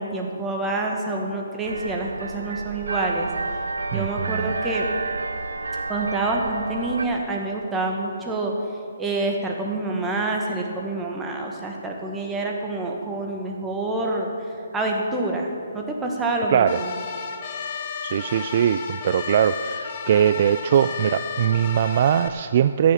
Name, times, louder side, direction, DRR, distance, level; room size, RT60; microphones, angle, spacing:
voice 1, 0.0-3.3 3.9-4.9 5.9-8.5 9.0-14.3 14.7-16.9, right 2 dB, 10° right, 0 dB, 1.6 m, -27 dB
sound 1, 1.6-7.1, right 3 dB, 75° right, 0.8 m, -30 dB
voice 2, 3.9-4.5 16.5-16.8 18.0-22.9, right 9 dB, 45° right, 11 dB, 0.3 m, -21 dB
sound 2, 16.7-22.3, left 6 dB, 40° left, 1.1 m, -33 dB
14.5 x 7.0 x 7.4 m, 2.5 s
figure-of-eight pair, 135°, 0 cm